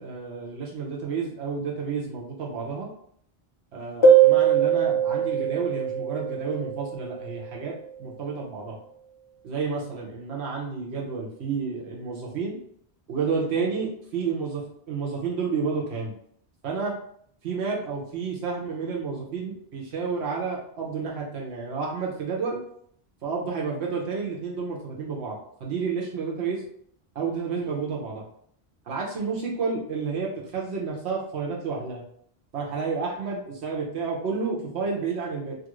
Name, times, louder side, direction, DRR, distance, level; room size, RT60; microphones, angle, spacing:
voice 1, 0.0-2.9 3.7-7.7 8.0-8.8 9.4-12.6 13.1-16.1 16.6-16.9 17.4-22.6 23.2-26.6 27.1-28.2 28.9-32.0 32.5-35.6, right 5 dB, 85° right, -2 dB, 1.1 m, -30 dB
sound 1, 4.0-7.3, right 7 dB, 35° left, 0.6 m, -21 dB
2.8 x 2.5 x 3.0 m, 0.65 s
omnidirectional pair, 1.1 m